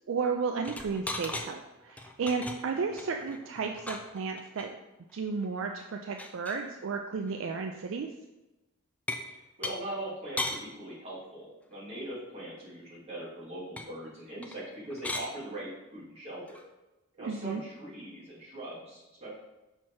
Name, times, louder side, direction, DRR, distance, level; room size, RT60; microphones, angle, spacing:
voice 1, 0.0-4.8 5.1-8.1 17.2-17.6, right 5 dB, 65° right, 4 dB, 0.4 m, -33 dB
sound 1, 0.6-1.5 1.9-4.6 5.1-5.2 5.4-5.5 5.8-6.7 7.3-7.5 9.1-9.3 9.6-9.7 10.4-10.6 13.8-13.9 14.4-14.6 14.9-15.3 16.5-16.6, left 2 dB, 5° left, 0.4 m, -38 dB
voice 2, 9.3-16.6 17.2-19.3, right 1 dB, 30° right, -7 dB, 2.4 m, -41 dB
5.8 x 4.4 x 4.6 m, 1.0 s
head